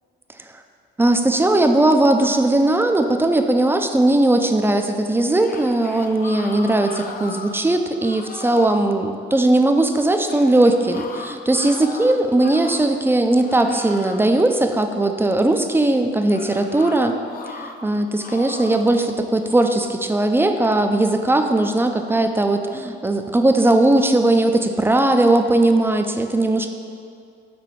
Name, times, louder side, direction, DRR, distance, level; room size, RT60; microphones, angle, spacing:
voice 1, 1.0-17.2 17.4-26.7, right 2 dB, 10° right, 6 dB, 0.4 m, -18 dB
sound 1, 5.2-7.6 8.0-8.9 10.3-13.0 13.4-14.4 16.3-17.8 18.2-18.9, left 4 dB, 45° left, 0.6 m, -37 dB
6.9 x 3.9 x 4.6 m, 2.4 s
cardioid pair, 90°, 20 cm